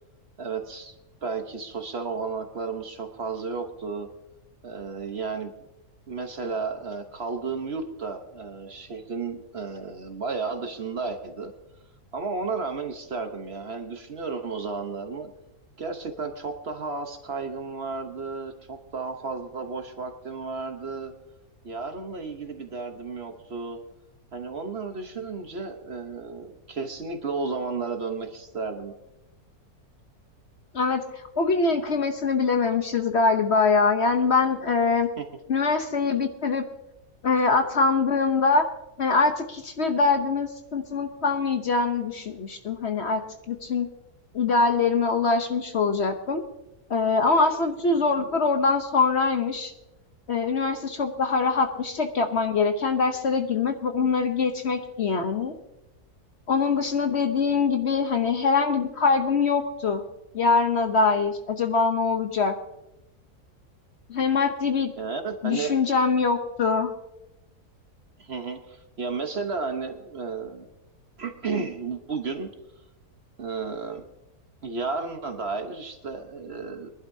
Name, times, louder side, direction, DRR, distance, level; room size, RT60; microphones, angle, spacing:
voice 1, 0.4-0.9 1.2-4.1 4.6-5.5 6.1-11.5 12.1-15.3 15.8-21.1 21.6-23.8 24.3-28.9 35.2-35.3 48.0-48.3 65.0-65.8 68.2-70.7 71.2-72.5 73.4-74.0 74.6-76.9, right 4 dB, 45° right, 6 dB, 1.1 m, -33 dB
voice 2, 30.7-35.1 35.5-36.6 37.2-38.6 39.0-43.2 43.5-43.9 44.3-46.4 46.9-49.7 50.3-55.5 56.5-60.0 60.3-62.6 64.1-64.9 65.4-66.9, left 4 dB, 50° left, 6 dB, 1.0 m, -23 dB
22.5 x 11.5 x 2.7 m, 0.92 s
omnidirectional pair, 1.6 m